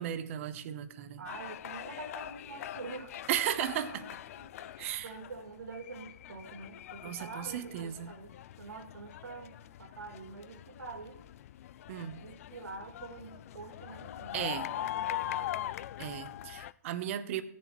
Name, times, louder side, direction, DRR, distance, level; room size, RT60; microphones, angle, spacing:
voice 1, 0.0-1.2 3.3-4.1 4.8-5.1 7.0-8.1 11.9-12.2 14.3-14.7 16.0-17.4, right 11 dB, 45° right, 11 dB, 0.9 m, -35 dB
sound 1, 1.2-16.7, left 13 dB, 50° left, 0.3 m, -42 dB
voice 2, 1.2-3.2 4.4-11.2 12.2-14.4 14.7-15.7, right 4 dB, 90° right, 4 dB, 2.1 m, -46 dB
17.5 x 7.3 x 3.1 m, 0.76 s
hypercardioid pair, 145°, 10 cm